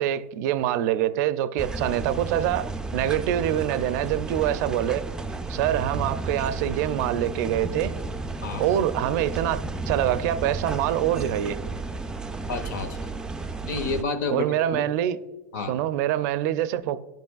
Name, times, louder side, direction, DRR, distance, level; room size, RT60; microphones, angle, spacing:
voice 1, 0.0-5.0 5.5-7.9 8.6-11.6 14.3-15.2 15.7-17.0, right 11 dB, 65° right, 0.4 m, -25 dB
sound 1, 1.6-14.0, right 3 dB, 10° right, 0.4 m, -33 dB
voice 2, 12.5-13.1 13.6-14.4 14.7-14.8 15.5-15.7, left 4 dB, 90° left, 0.9 m, -29 dB
12.0 x 5.2 x 2.3 m
supercardioid pair, 120°, 10 cm